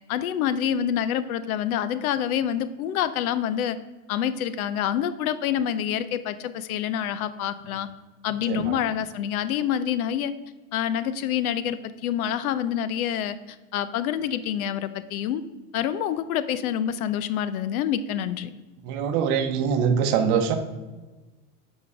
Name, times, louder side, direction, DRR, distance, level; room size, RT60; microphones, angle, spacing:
voice 1, 0.1-3.8 4.1-7.9 8.2-10.3 10.7-15.4 15.7-18.5, left 9 dB, 85° left, 14 dB, 0.8 m, -27 dB
voice 2, 18.8-20.6, right 7 dB, 45° right, 7 dB, 1.0 m, -23 dB
8.1 x 5.3 x 4.8 m, 1.2 s
supercardioid pair, 155°, 42 cm